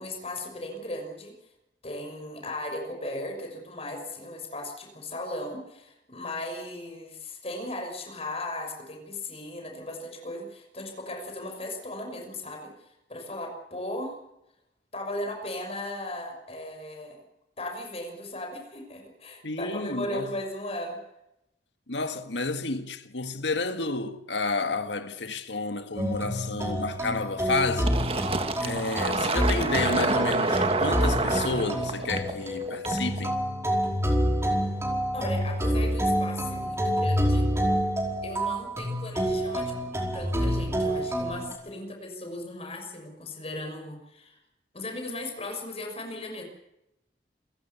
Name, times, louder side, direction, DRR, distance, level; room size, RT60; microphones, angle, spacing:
voice 1, 0.0-1.3 1.8-14.2 14.9-17.2 17.6-21.0 35.1-37.5 38.2-44.4 44.7-46.4, left 1 dB, 35° left, 6.2 m, -37 dB
voice 2, 19.4-20.3 21.9-28.0 28.6-33.4, left 3 dB, 85° left, 1.9 m, -31 dB
sound 1, 26.0-41.5, equal, 15° right, 4.8 m, -28 dB
Fill (with liquid), 27.9-33.3, right 3 dB, 35° right, 1.8 m, -28 dB
27.5 x 16.0 x 7.1 m
head